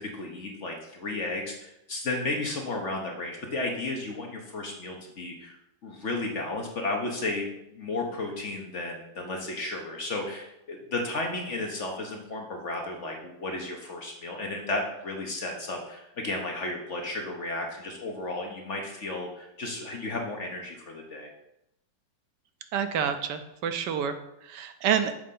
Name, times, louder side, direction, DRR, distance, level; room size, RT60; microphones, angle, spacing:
voice 1, 0.0-5.6 5.8-7.5 7.7-21.3, left 2 dB, 50° left, 1 dB, 1.0 m, -33 dB
voice 2, 22.7-24.2 24.4-25.1, right 8 dB, 75° right, 9 dB, 1.2 m, -28 dB
6.7 x 3.9 x 5.4 m, 0.83 s
omnidirectional pair, 2.0 m